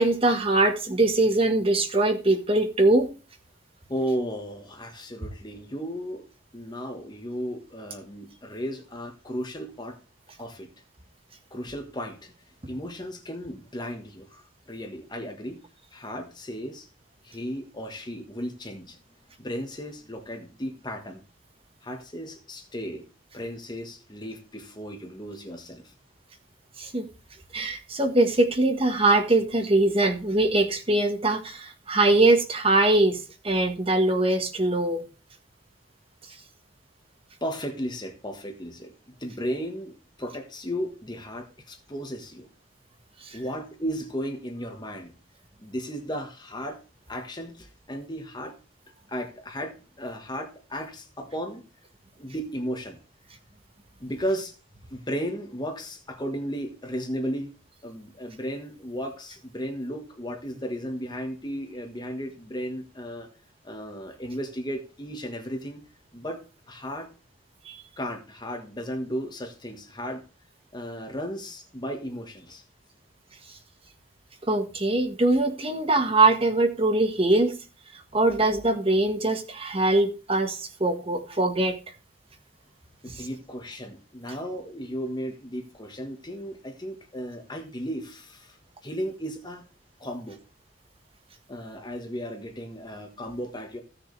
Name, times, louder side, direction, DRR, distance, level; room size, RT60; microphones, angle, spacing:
voice 1, 0.0-3.1 26.8-27.1 27.5-35.0 43.3-43.4 67.7-67.8 74.5-77.5 78.1-81.8, right 2 dB, 30° right, 6 dB, 1.5 m, -22 dB
voice 2, 3.9-6.2 6.5-10.0 10.4-10.7 11.5-12.3 12.7-15.6 15.9-16.9 17.2-19.0 19.4-21.2 21.8-23.0 23.3-25.9 37.4-42.5 43.3-45.1 45.6-46.8 47.1-48.6 49.1-51.6 52.2-53.0 54.0-54.5 54.9-57.5 57.8-63.3 63.6-65.8 66.1-67.1 68.0-70.2 70.7-72.6 83.0-88.6 88.8-89.6 90.0-90.4 91.5-93.8, equal, 20° left, 4 dB, 1.5 m, -35 dB
16.0 x 6.7 x 3.4 m, 0.33 s
head